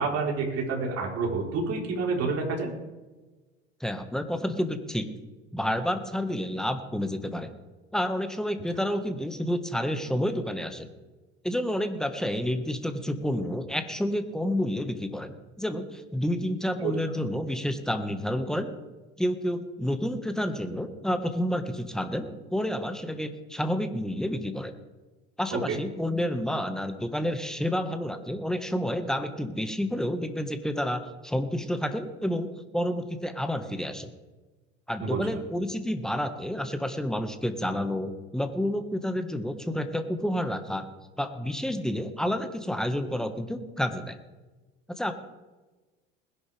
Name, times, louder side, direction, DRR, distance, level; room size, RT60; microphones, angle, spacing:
voice 1, 0.0-2.7 16.8-16.9 25.5-25.8 35.0-35.4, right 4 dB, 45° right, -1 dB, 4.4 m, -28 dB
voice 2, 3.8-5.1 5.5-7.5 7.9-10.9 11.4-15.3 15.6-18.7 19.2-24.7 25.4-34.1 34.9-40.8 41.2-44.2 44.9-45.1, equal, ahead, 8 dB, 1.6 m, -29 dB
20.5 x 11.0 x 3.5 m, 1.2 s
hypercardioid pair, 75°, 34 cm